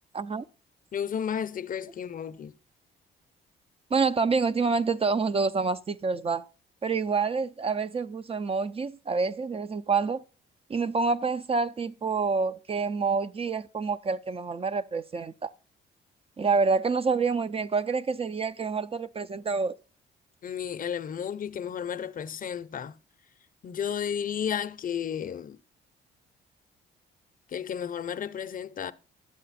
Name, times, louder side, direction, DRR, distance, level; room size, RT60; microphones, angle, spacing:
voice 1, 0.1-0.4 3.9-6.5 6.8-10.2 10.7-15.5 16.4-19.7, right 4 dB, 30° right, 0.4 m, -27 dB
voice 2, 0.9-2.5 20.4-22.9 23.6-25.6 27.5-28.9, left 8 dB, 45° left, 0.6 m, -33 dB
11.0 x 7.6 x 4.1 m
cardioid pair, 90°, 20 cm